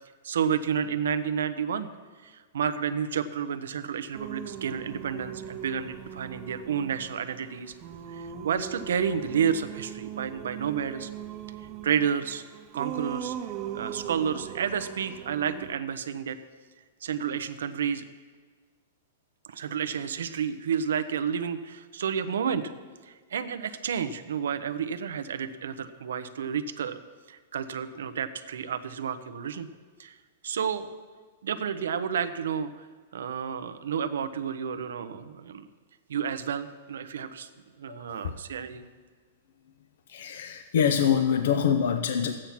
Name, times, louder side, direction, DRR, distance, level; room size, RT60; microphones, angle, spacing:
voice 1, 0.2-1.9 2.2-7.7 8.1-11.1 11.8-12.4 12.7-13.3 13.7-16.4 17.0-18.0 19.5-22.7 23.1-27.0 27.3-29.7 30.0-30.2 30.4-30.9 31.4-32.9 33.1-35.7 36.1-37.5 37.8-38.8, right 7 dB, 85° right, 11 dB, 0.8 m, -30 dB
Singing, 4.1-15.8, right 9 dB, 20° right, 0.4 m, -40 dB
voice 2, 37.9-38.2 40.1-42.3, left 8 dB, 55° left, 7 dB, 0.7 m, -25 dB
13.5 x 8.8 x 5.9 m, 1.5 s
supercardioid pair, 180°, 0 cm